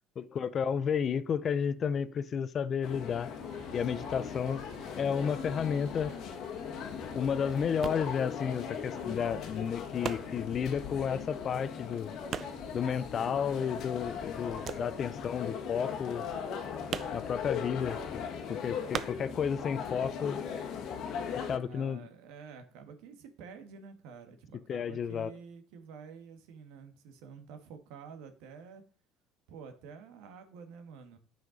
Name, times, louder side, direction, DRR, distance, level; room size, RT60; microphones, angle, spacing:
voice 1, 0.2-3.3 3.7-4.6 5.0-6.1 7.1-12.1 12.7-16.3 17.1-18.2 18.5-20.4 21.5-22.1 24.7-25.3, left 7 dB, 35° left, 0.6 m, -32 dB
sound 1, 2.8-21.6, left 7 dB, 55° left, 1.4 m, -39 dB
sound 2, 3.4-10.6, right 5 dB, 65° right, 2.4 m, -55 dB
voice 2, 3.8-4.4 12.9-13.4 21.6-28.8 29.5-31.2, right 6 dB, 80° right, 1.7 m, -49 dB
sound 3, 6.5-13.8 14.1-20.0 20.2-21.3, right 8 dB, 40° right, 0.5 m, -42 dB
9.2 x 5.8 x 5.1 m
cardioid pair, 125°, 0 cm